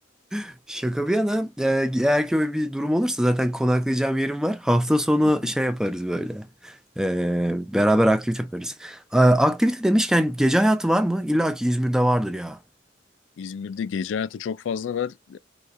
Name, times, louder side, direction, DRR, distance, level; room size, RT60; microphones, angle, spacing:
voice 1, 0.3-12.6, equal, 5° right, 0.3 m, -22 dB
voice 2, 13.4-15.4, left 7 dB, 90° left, 0.3 m, -30 dB
3.6 x 2.4 x 2.5 m
head